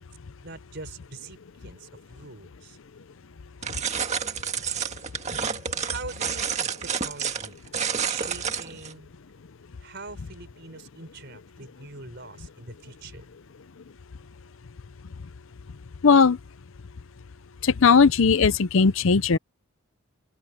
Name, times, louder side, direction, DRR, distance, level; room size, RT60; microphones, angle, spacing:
voice 1, 0.4-2.8 5.8-7.6 8.1-9.1 9.8-13.3, right 3 dB, 50° right, 4.6 m, -43 dB
sound 1, 3.6-8.9, right 7 dB, 30° right, 1.8 m, -29 dB
voice 2, 16.0-16.4 17.6-19.4, left 5 dB, 65° left, 0.6 m, -18 dB
open air
head